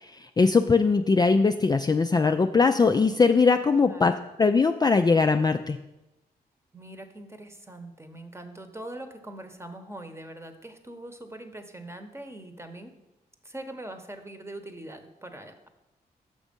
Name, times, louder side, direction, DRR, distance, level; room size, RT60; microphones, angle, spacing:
voice 1, 0.0-4.1 4.4-5.8, left 4 dB, 25° left, 6 dB, 0.3 m, -21 dB
voice 2, 3.8-4.1 6.7-12.9 13.4-15.7, right 1 dB, 15° right, 7 dB, 1.0 m, -42 dB
6.1 x 5.3 x 5.2 m, 0.96 s
supercardioid pair, 45°, 17 cm